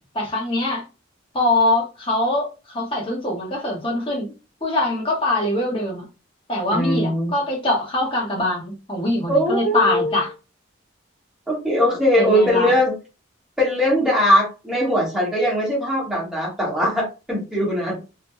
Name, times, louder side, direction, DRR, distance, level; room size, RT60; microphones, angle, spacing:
voice 1, 0.1-0.8 1.3-4.3 4.6-6.0 6.5-10.3 12.2-12.7, left 1 dB, 25° left, 1.3 m, -23 dB
voice 2, 6.7-7.3 9.3-10.1 11.5-12.9 13.6-18.0, equal, 5° right, 1.5 m, -20 dB
3.7 x 3.0 x 2.3 m
head